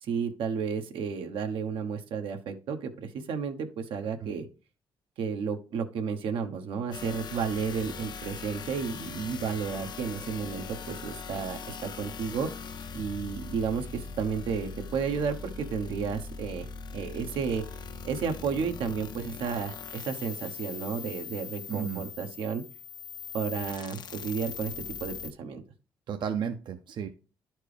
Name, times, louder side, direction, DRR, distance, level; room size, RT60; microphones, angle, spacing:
voice 1, 0.0-4.5 5.2-12.5 12.9-16.7 16.9-17.6 18.0-22.6 23.3-24.7 25.0-25.6, right 6 dB, 85° right, 6 dB, 1.0 m, -32 dB
sound 1, 6.9-25.3, left 5 dB, 55° left, 0.6 m, -41 dB
voice 2, 21.7-22.0 26.1-27.1, right 8 dB, 60° right, 6 dB, 0.6 m, -33 dB
11.5 x 4.5 x 3.3 m, 0.35 s
cardioid pair, 100°, 9 cm